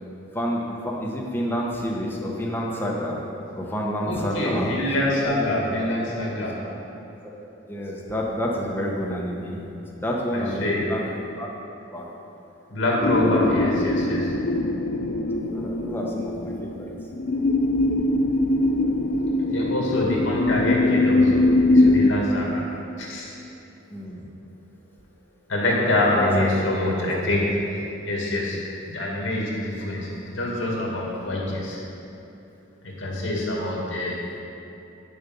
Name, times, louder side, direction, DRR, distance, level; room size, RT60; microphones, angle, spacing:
voice 1, 0.3-3.2 3.6-4.7 7.7-9.6 10.0-11.0 11.4-11.6 11.9-12.1 15.3-16.9 23.9-24.2 26.1-26.6 27.0-27.3, equal, 10° left, -2 dB, 1.1 m, -29 dB
voice 2, 4.1-6.6 10.3-10.9 12.7-14.3 19.5-22.7 23.0-23.3 25.5-28.6 28.9-31.8 32.8-34.3, left 1 dB, 75° left, -3 dB, 2.2 m, -25 dB
sound 1, 13.0-22.1, left 2 dB, 50° left, 0.5 m, -22 dB
9.9 x 6.9 x 5.4 m, 2.8 s
head